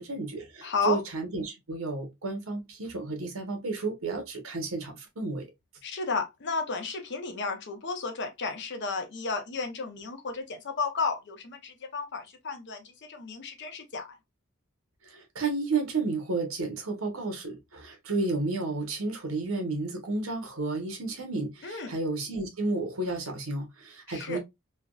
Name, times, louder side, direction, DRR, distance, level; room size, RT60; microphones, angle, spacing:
voice 1, 0.0-5.4 15.0-24.4, right 3 dB, 80° right, 1.0 m, -32 dB
voice 2, 0.6-1.0 5.8-12.8 13.1-14.1 21.6-21.9 24.1-24.4, left 4 dB, 55° left, 0.7 m, -33 dB
3.4 x 2.2 x 2.3 m
head